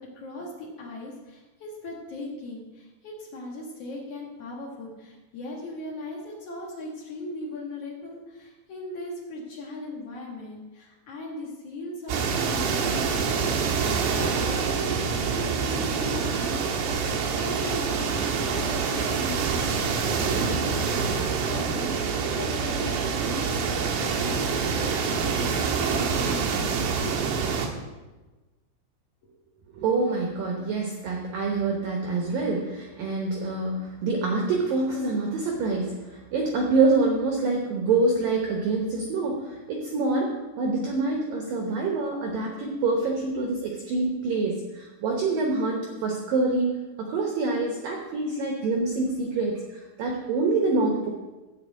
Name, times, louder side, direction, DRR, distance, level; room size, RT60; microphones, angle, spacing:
voice 1, 0.0-16.6 16.9-27.3 29.2-29.3, left 1 dB, 80° left, -3 dB, 1.3 m, -39 dB
sound 1, 12.1-27.7, right 5 dB, 70° right, 3.0 m, -26 dB
voice 2, 29.7-46.7 47.0-51.1, right 3 dB, 85° right, 0 dB, 1.9 m, -26 dB
13.0 x 4.5 x 8.3 m, 1.2 s
omnidirectional pair, 5.8 m